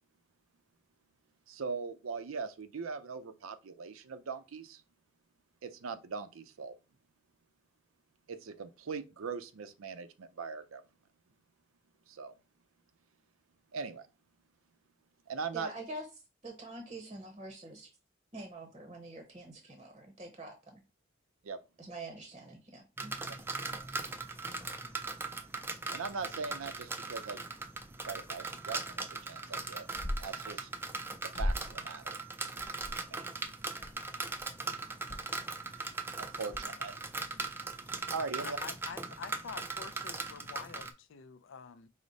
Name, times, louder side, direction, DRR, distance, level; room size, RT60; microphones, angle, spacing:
voice 1, 1.5-4.8 5.6-6.7 8.3-10.8 12.1-12.3 13.7-14.1 15.3-15.7 21.4-21.6 23.7-23.8 25.9-27.5 28.0-29.9 30.2-30.7 31.4-32.2 33.1-33.3 36.2-37.0 38.1-38.6, right 5 dB, 90° right, 0.5 m, -40 dB
voice 2, 15.5-16.1 16.4-17.9 18.3-20.8 21.8-23.3, right 2 dB, 30° right, 0.7 m, -46 dB
sound 1, 23.0-40.9, right 3 dB, 10° right, 0.3 m, -39 dB
sound 2, 29.9-30.4 31.3-31.8 32.6-33.1 33.8-34.0 34.3-34.5 35.1-35.3 36.5-36.7, equal, 40° left, 0.8 m, -36 dB
voice 3, 38.4-41.9, left 6 dB, 65° left, 0.4 m, -47 dB
4.9 x 2.0 x 3.9 m
head